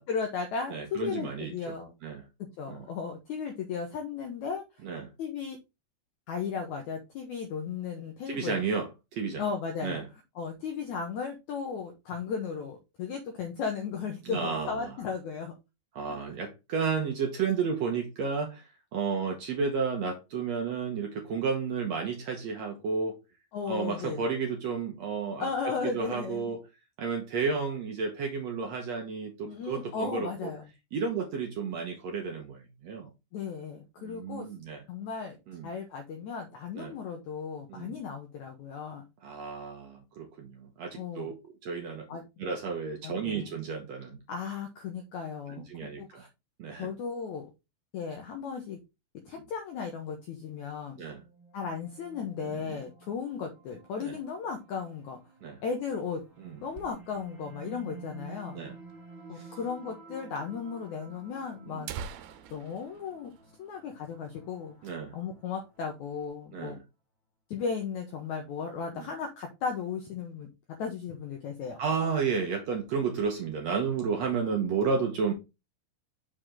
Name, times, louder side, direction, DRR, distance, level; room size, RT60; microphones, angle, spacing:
voice 1, 0.1-1.9 2.4-4.6 5.2-5.6 6.3-8.6 9.4-10.0 10.4-15.6 23.5-24.2 25.4-26.6 29.5-30.6 33.3-34.5 34.9-35.4 35.6-39.0 40.9-41.3 42.1-42.2 43.0-43.6 44.3-46.3 46.8-47.5 47.9-48.8 49.3-51.0 51.5-55.2 55.6-56.2 56.6-58.6 59.3-61.9 62.5-63.3 63.6-66.8 67.5-71.8, left 6 dB, 70° left, 1.9 m, -35 dB
voice 2, 0.7-1.7 2.0-2.2 2.7-2.9 4.8-5.1 8.3-9.4 9.8-10.1 14.2-14.9 15.9-23.2 23.7-26.6 27.0-30.5 30.9-33.1 34.0-34.8 35.5-35.7 36.8-36.9 37.7-37.9 39.2-41.3 41.6-42.1 42.4-44.2 45.6-46.3 46.6-46.9 51.0-51.2 52.7-52.8 54.0-54.1 55.4-55.6 56.4-56.6 58.5-58.7 59.3-59.5 61.7-61.9 64.8-65.1 66.5-66.8 68.9-69.1 71.8-75.3, right 5 dB, 70° right, 1.6 m, -32 dB
sound 1, 50.9-66.3, right 4 dB, 35° right, 2.5 m, -52 dB
sound 2, 56.2-57.5 57.8-57.9 58.1-58.2 58.9-59.0 59.9-60.0 60.4-60.5 61.2-61.3 61.6-64.2 64.6-64.7 65.1-65.4 65.8-66.4, right 7 dB, 90° right, 2.6 m, -45 dB
6.3 x 4.9 x 3.6 m
omnidirectional pair, 4.3 m